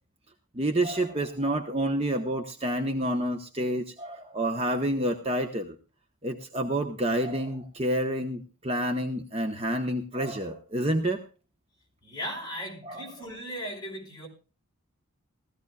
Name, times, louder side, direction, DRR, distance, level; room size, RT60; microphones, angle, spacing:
voice 1, 0.5-5.8 6.2-11.2 12.8-13.1, right 1 dB, 30° right, 5 dB, 1.0 m, -28 dB
voice 2, 12.0-14.3, equal, 20° left, -1 dB, 5.5 m, -37 dB
19.0 x 15.0 x 2.4 m, 0.34 s
head